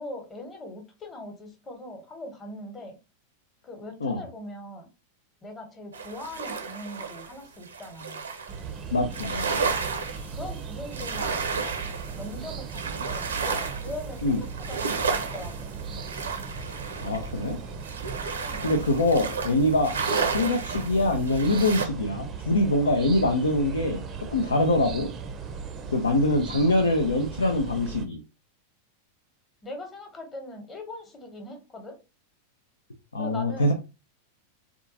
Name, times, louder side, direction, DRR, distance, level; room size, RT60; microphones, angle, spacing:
voice 1, 0.0-3.0 3.6-4.9 5.4-8.2 9.3-9.7 10.3-11.8 12.1-14.2 14.7-15.7 18.4-18.7 26.5-26.9 29.6-32.0 33.2-33.7, left 1 dB, 20° left, 4 dB, 1.0 m, -41 dB
sound 1, 5.9-8.6 9.1-21.9, right 5 dB, 70° right, 0.6 m, -32 dB
sound 2, 8.5-28.0, right 5 dB, 25° right, 0.5 m, -38 dB
voice 2, 8.9-9.6 14.2-14.4 17.0-17.6 18.6-20.0 20.3-24.0 24.3-25.1 25.9-28.2 33.1-33.7, left 1 dB, 75° left, 4 dB, 0.5 m, -24 dB
3.6 x 2.4 x 2.7 m, 0.29 s
figure-of-eight pair, 90°, 0 cm